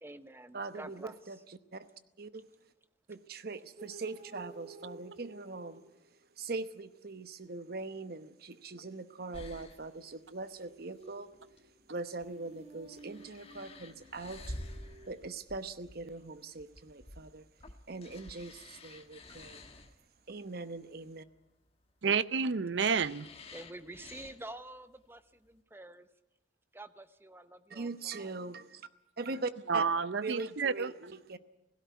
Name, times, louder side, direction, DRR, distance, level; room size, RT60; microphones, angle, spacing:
voice 1, 0.0-1.1 23.5-26.1 26.7-27.9 28.2-28.4, right 1 dB, 15° right, 0.8 m, -48 dB
voice 2, 0.5-1.9 2.2-2.4 3.1-5.8 6.4-11.3 11.9-14.6 15.1-17.5 17.9-19.6 20.3-21.2 27.7-28.9 29.2-29.8 30.2-31.4, right 3 dB, 55° right, 0.9 m, -41 dB
sound 1, 3.8-6.4 9.9-15.1, right 2 dB, 35° right, 2.0 m, -54 dB
sound 2, 9.3-25.6, left 1 dB, 35° left, 1.4 m, -50 dB
voice 3, 22.0-23.3 29.7-30.9, right 5 dB, 80° right, 0.6 m, -30 dB
16.5 x 16.5 x 9.3 m
head